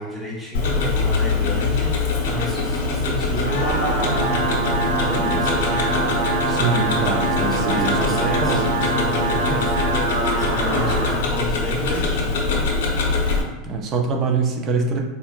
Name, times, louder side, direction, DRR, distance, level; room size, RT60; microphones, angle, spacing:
voice 1, 0.0-4.5 4.9-6.3 7.1-12.4, equal, ahead, -6 dB, 0.8 m, -31 dB
Tick-tock, 0.5-13.4, left 3 dB, 80° left, 0.6 m, -23 dB
sound 1, 3.2-11.2, right 2 dB, 80° right, 0.5 m, -24 dB
voice 2, 6.5-8.9 13.6-15.0, right 4 dB, 40° right, 3 dB, 0.5 m, -24 dB
4.0 x 2.5 x 2.2 m, 1.2 s
supercardioid pair, 125°, 0 cm